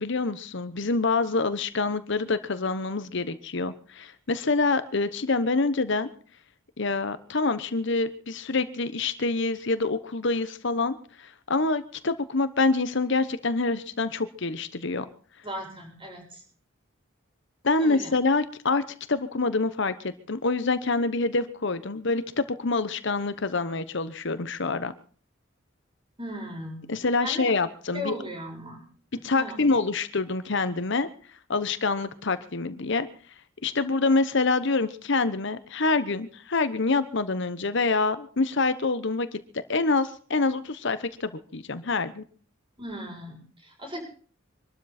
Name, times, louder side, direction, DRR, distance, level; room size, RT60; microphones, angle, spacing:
voice 1, 0.0-6.1 6.8-15.1 17.6-18.8 19.1-24.9 26.9-28.1 29.2-31.1 31.5-33.1 33.6-39.4 39.7-42.2, left 3 dB, 65° left, 12 dB, 1.0 m, -26 dB
voice 2, 15.4-16.4 17.8-18.2 26.2-26.8 27.2-27.5 27.9-28.8 29.1-29.7 42.8-44.0, equal, 25° right, 0 dB, 7.5 m, -37 dB
24.5 x 12.5 x 4.3 m, 0.43 s
head